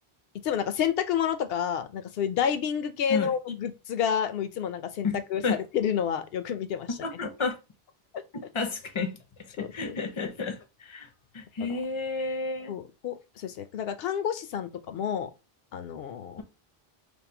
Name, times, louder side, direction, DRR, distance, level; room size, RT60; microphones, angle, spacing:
voice 1, 0.4-6.9 9.6-10.0 11.6-11.7 12.7-15.3 15.7-16.4, left 8 dB, 70° left, 0.8 m, -29 dB
voice 2, 7.0-7.6 8.3-11.1 11.3-12.7, left 4 dB, 35° left, 0.6 m, -31 dB
3.5 x 2.2 x 4.4 m
omnidirectional pair, 1.1 m